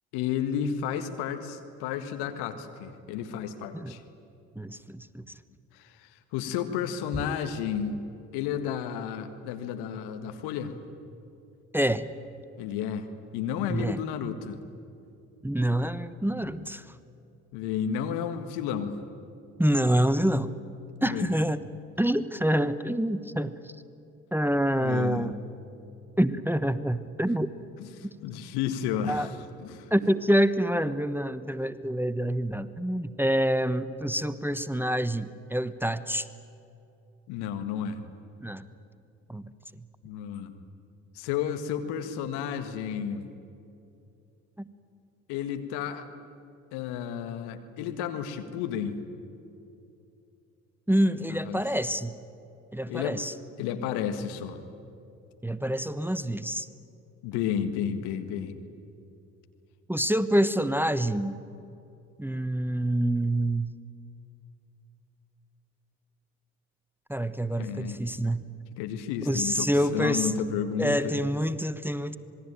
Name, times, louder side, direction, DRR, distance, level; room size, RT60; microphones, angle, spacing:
voice 1, 0.1-4.0 5.7-8.0 8.3-10.7 12.6-13.1 13.3-14.6 17.5-19.0 21.0-21.3 24.7-25.3 27.8-29.9 37.3-38.0 40.0-40.5 41.2-43.3 45.3-46.1 46.7-49.0 51.5-51.6 52.9-53.2 53.6-54.6 57.2-58.5 67.6-68.0 68.8-71.2, left 8 dB, 70° left, 8 dB, 1.9 m, -32 dB
voice 2, 4.5-5.2 11.7-12.1 13.7-14.0 15.4-16.9 19.6-20.5 21.0-21.6 22.0-23.7 24.3-25.3 26.2-27.5 28.0-28.1 29.1-29.3 29.9-36.3 38.4-38.6 39.3-39.4 39.7-39.8 44.6-44.7 50.9-52.1 52.7-53.3 55.4-56.7 59.9-61.4 62.2-63.7 67.1-68.5 69.2-70.3 70.8-72.2, right 1 dB, 5° right, 13 dB, 1.1 m, -27 dB
26.5 x 21.0 x 9.1 m, 2.7 s
hypercardioid pair, 45°, 40 cm